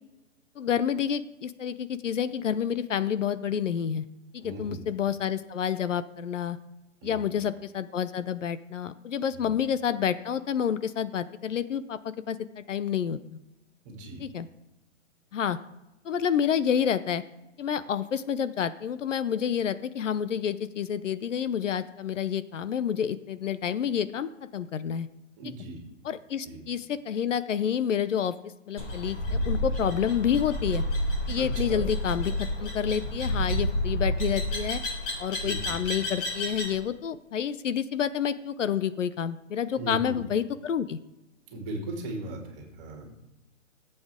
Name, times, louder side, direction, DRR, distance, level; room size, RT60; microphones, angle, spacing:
voice 1, 0.6-4.1 4.3-6.6 7.0-12.0 12.3-13.4 14.2-14.5 15.3-15.6 16.0-17.2 17.6-25.1 26.0-28.4 28.7-30.8 31.3-32.3 32.6-34.8 35.2-41.0, left 8 dB, 70° left, 15 dB, 0.7 m, -29 dB
voice 2, 4.4-4.8 7.0-7.2 9.3-9.5 13.8-14.2 25.4-25.8 26.4-26.6 31.4-31.8 35.4-35.7 39.8-40.2 41.5-43.1, right 2 dB, 25° right, 1 dB, 2.8 m, -38 dB
sound 1, 28.8-36.8, left 1 dB, 45° left, 4.3 m, -30 dB
15.0 x 7.9 x 3.7 m, 1.0 s
hypercardioid pair, 160°, 39 cm